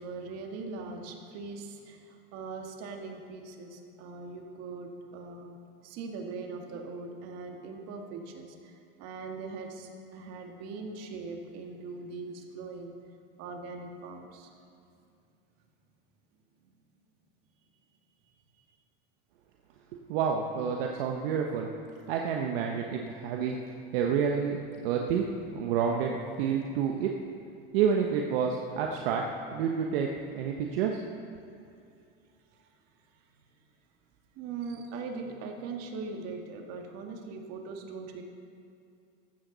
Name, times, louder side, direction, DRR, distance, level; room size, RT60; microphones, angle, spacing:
voice 1, 0.0-5.6 5.8-13.0 13.4-14.5 16.6-16.7 32.6-32.7 34.4-38.2, right 4 dB, 55° right, 3 dB, 1.9 m, -41 dB
voice 2, 20.1-21.7 22.1-23.6 23.9-24.6 24.8-25.3 25.5-26.1 26.4-27.1 27.7-29.2 29.5-30.1 30.3-31.0, right 7 dB, 75° right, 1 dB, 1.1 m, -28 dB
15.5 x 12.5 x 4.0 m, 2.5 s
supercardioid pair, 110°, 29 cm